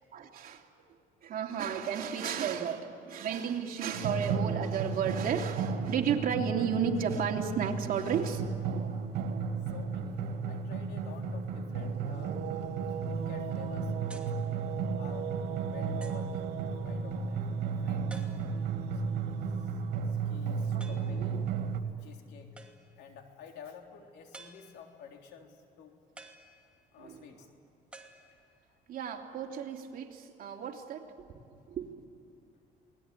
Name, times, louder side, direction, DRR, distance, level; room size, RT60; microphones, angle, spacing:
voice 1, 0.1-0.6 1.2-8.9 20.7-21.5 27.0-27.2 28.9-31.4 31.7-32.0, right 7 dB, 55° right, 1 dB, 3.1 m, -33 dB
sound 1, 3.9-21.8, right 5 dB, 80° right, 2.6 m, -34 dB
voice 2, 9.6-10.2 10.5-12.5 13.1-14.4 15.0-15.4 15.7-16.5 16.8-18.4 18.9-19.8 20.1-21.6 22.0-22.6 23.0-26.0 26.9-27.5, left 7 dB, 80° left, 3 dB, 3.6 m, -51 dB
sound 2, 14.1-14.4 15.2-15.3 16.0-16.4 18.1-18.7 20.8-21.2 22.6-23.1 24.3-25.0 26.2-27.0 27.9-28.8, right 2 dB, 5° right, 2.7 m, -52 dB
29.0 x 20.0 x 9.8 m, 2.6 s
cardioid pair, 110°, 17 cm